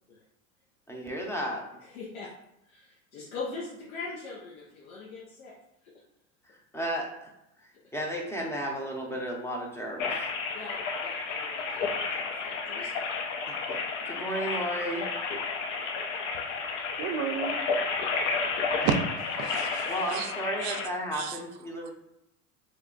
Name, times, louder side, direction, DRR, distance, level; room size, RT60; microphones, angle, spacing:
voice 1, 0.9-1.7 6.5-7.3 7.9-10.2 13.5-15.1 19.9-21.9, equal, 5° left, 0 dB, 0.6 m, -33 dB
voice 2, 1.8-2.3 2.7-5.5 10.5-13.1, left 3 dB, 90° left, -4 dB, 0.8 m, -42 dB
sound 1, 10.0-20.9, left 4 dB, 60° left, 0.6 m, -31 dB
voice 3, 17.0-17.6 18.8-19.0 19.4-20.3 20.6-20.8 21.2-21.3, right 8 dB, 50° right, 7 dB, 0.5 m, -31 dB
3.2 x 2.1 x 3.8 m, 0.84 s
hypercardioid pair, 100°, 41 cm